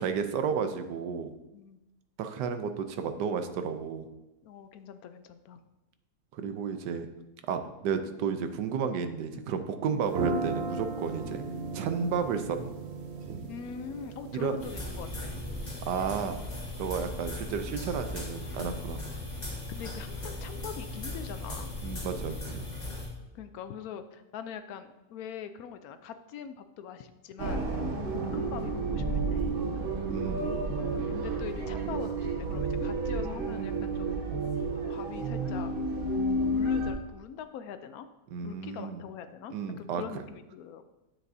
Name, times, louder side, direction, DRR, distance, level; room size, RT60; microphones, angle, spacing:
voice 1, 0.0-1.3 2.2-4.1 6.3-7.1 7.5-11.4 11.7-12.7 14.3-14.6 15.8-16.4 16.8-19.0 21.8-22.7 27.8-28.0 30.1-30.7 38.3-39.0 39.5-40.2, right 6 dB, 85° right, 8 dB, 1.3 m, -32 dB
voice 2, 4.4-5.6 9.9-10.0 11.3-11.4 13.5-15.4 19.7-21.7 23.3-27.7 28.1-29.5 31.1-34.6 34.9-35.7 36.3-38.1 38.4-40.8, left 8 dB, 70° left, 10 dB, 1.0 m, -43 dB
sound 1, 10.0-16.0, right 3 dB, 55° right, 0.8 m, -37 dB
sound 2, 14.6-23.1, left 2 dB, 25° left, 1.8 m, -38 dB
sound 3, 27.4-36.9, right 2 dB, 40° right, 1.1 m, -31 dB
9.4 x 7.4 x 2.7 m, 0.99 s
omnidirectional pair, 1.8 m